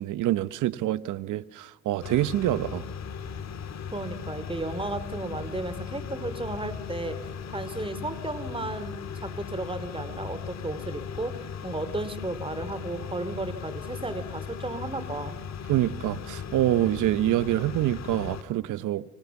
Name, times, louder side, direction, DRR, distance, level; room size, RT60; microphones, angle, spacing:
voice 1, 0.0-2.8 15.7-19.0, right 14 dB, 85° right, 1.0 m, -26 dB
sound 1, 2.0-18.4, left 7 dB, 60° left, 2.8 m, -37 dB
voice 2, 3.9-7.2 7.5-15.4, right 2 dB, 15° right, 2.9 m, -34 dB
29.5 x 24.0 x 7.1 m
cardioid pair, 90°, 30 cm